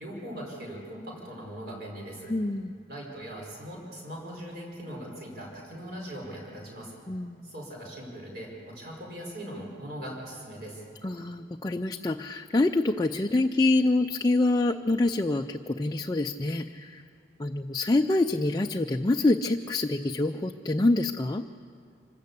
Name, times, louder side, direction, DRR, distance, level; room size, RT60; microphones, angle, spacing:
voice 1, 0.0-2.3 2.9-6.9 7.4-10.8, equal, 60° right, -2 dB, 5.3 m, -40 dB
voice 2, 2.3-2.8 7.1-7.5 11.0-17.0 17.4-21.4, left 2 dB, 20° left, 4 dB, 0.4 m, -26 dB
25.5 x 13.5 x 8.4 m, 2.3 s
head